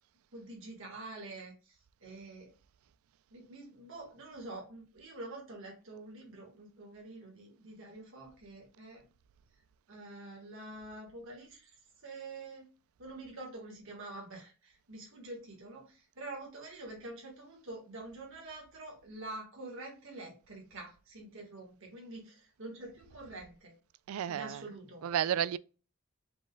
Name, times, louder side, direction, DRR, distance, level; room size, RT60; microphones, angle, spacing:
voice 1, 0.3-1.5 2.0-2.5 3.3-9.0 9.9-11.7 12.0-12.7 13.0-23.7 24.3-25.0, right 2 dB, 65° right, 1.6 m, -46 dB
voice 2, 24.1-24.6 25.0-25.6, right 9 dB, 90° right, 0.3 m, -31 dB
4.9 x 3.9 x 2.3 m
head